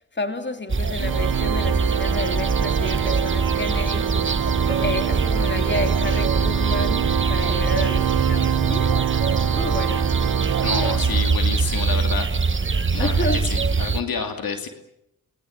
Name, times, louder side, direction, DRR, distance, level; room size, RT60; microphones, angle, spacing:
voice 1, 0.1-4.1 4.7-9.0 9.5-10.1 13.0-13.4, left 2 dB, 30° left, 2.8 m, -30 dB
sound 1, 0.7-14.0, right 4 dB, 35° right, 1.3 m, -23 dB
Organ, 1.0-11.6, right 10 dB, 70° right, 0.9 m, -26 dB
voice 2, 10.6-12.3 12.9-14.7, left 6 dB, 75° left, 2.8 m, -29 dB
28.0 x 20.5 x 7.3 m
supercardioid pair, 40°, 35 cm